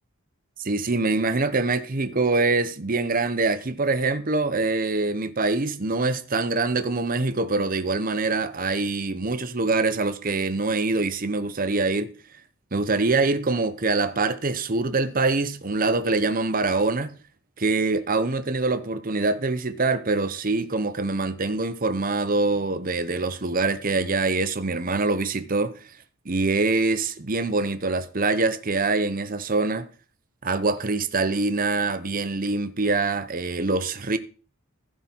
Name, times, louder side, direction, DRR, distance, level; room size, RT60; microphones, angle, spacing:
voice 1, 0.6-12.1 12.7-17.1 17.6-25.7 26.3-29.9 30.4-34.2, right 3 dB, 40° right, 0.8 m, -24 dB
15.5 x 7.6 x 4.6 m
head